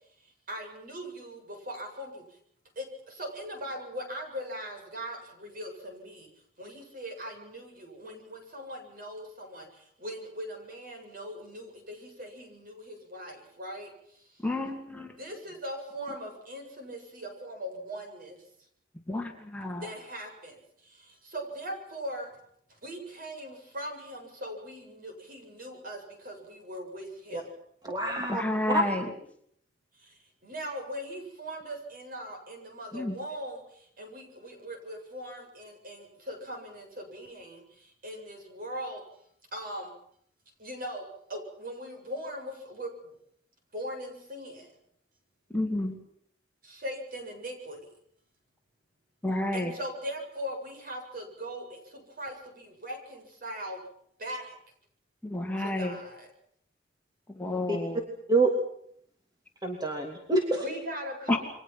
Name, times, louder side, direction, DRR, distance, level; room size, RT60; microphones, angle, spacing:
voice 1, 0.2-2.4 2.8-6.3 6.6-14.4 15.2-18.4 19.8-22.3 22.7-27.5 29.9-39.0 39.5-39.9 40.6-43.1 43.7-44.7 46.6-47.9 49.5-53.8 54.2-54.6 55.6-56.3 60.6-61.4, equal, 55° right, 4 dB, 7.9 m, -40 dB
voice 2, 14.4-15.2 19.1-19.9 28.3-29.1 32.9-33.1 45.5-46.0 49.2-49.7 55.2-56.0 57.3-58.0 61.3-61.4, left 1 dB, 10° left, 2 dB, 2.8 m, -30 dB
voice 3, 27.8-28.4 28.7-28.8 57.7-57.8 58.3-58.5 59.6-60.6, right 2 dB, 25° right, 1 dB, 3.0 m, -26 dB
29.0 x 23.5 x 6.0 m, 0.67 s
head